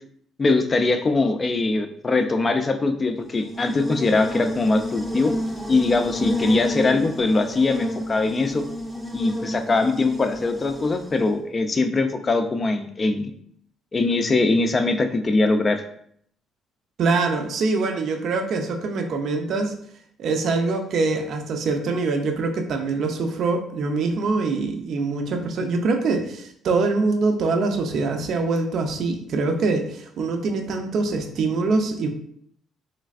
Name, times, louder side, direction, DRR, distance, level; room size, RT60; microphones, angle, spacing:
voice 1, 0.4-5.3 5.7-8.6 9.1-13.3 13.9-15.8, left 3 dB, 30° left, 8 dB, 0.4 m, -22 dB
Buzz, 3.2-11.4, equal, 10° left, 0.7 m, -30 dB
voice 2, 17.0-19.7 20.2-32.1, right 3 dB, 60° right, 5 dB, 0.5 m, -24 dB
3.2 x 3.2 x 2.4 m, 0.66 s
cardioid pair, 90°, 0 cm